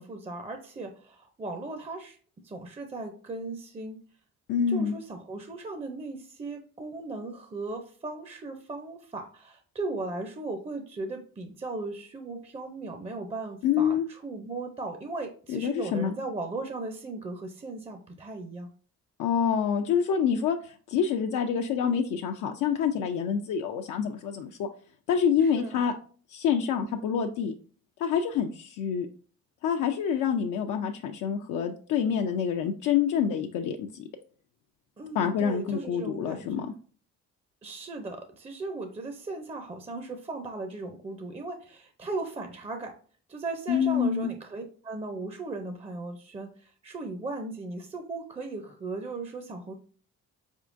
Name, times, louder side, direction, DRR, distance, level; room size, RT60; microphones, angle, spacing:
voice 1, 0.0-2.2 2.4-4.0 4.7-18.7 25.4-25.8 35.0-36.5 37.6-43.0 43.3-49.7, right 3 dB, 20° right, 6 dB, 0.5 m, -37 dB
voice 2, 4.5-4.9 13.6-14.1 15.5-16.1 19.2-24.7 25.1-25.9 26.3-27.5 28.0-29.1 29.6-34.1 35.1-36.7 43.7-44.3, left 7 dB, 80° left, 4 dB, 0.5 m, -27 dB
4.3 x 3.6 x 2.5 m, 0.43 s
cardioid pair, 90°, 30 cm